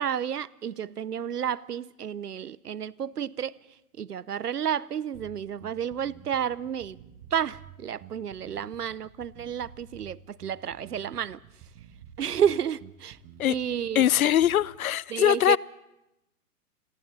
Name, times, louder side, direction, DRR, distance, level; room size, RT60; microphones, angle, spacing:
voice 1, 0.0-3.6 4.0-7.0 7.3-11.4 12.2-13.2 13.5-14.0 15.1-15.6, right 8 dB, 90° right, 0.7 m, -31 dB
Bass guitar, 5.1-14.7, right 9 dB, 30° right, 1.7 m, -50 dB
voice 2, 13.9-15.6, left 11 dB, 65° left, 0.6 m, -22 dB
29.5 x 22.0 x 4.1 m
figure-of-eight pair, 125°, 45 cm